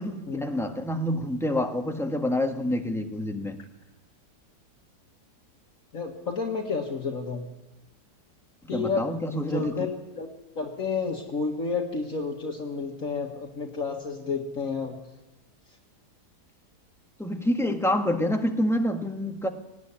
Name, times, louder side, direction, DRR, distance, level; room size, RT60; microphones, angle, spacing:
voice 1, 0.0-3.6 8.6-9.7 17.2-19.5, left 1 dB, ahead, 3 dB, 1.5 m, -27 dB
voice 2, 5.9-7.4 8.7-9.1 9.5-9.9 10.2-10.3 10.6-15.0, left 4 dB, 55° left, 0 dB, 2.1 m, -30 dB
18.5 x 17.0 x 10.0 m, 1.1 s
omnidirectional pair, 1.8 m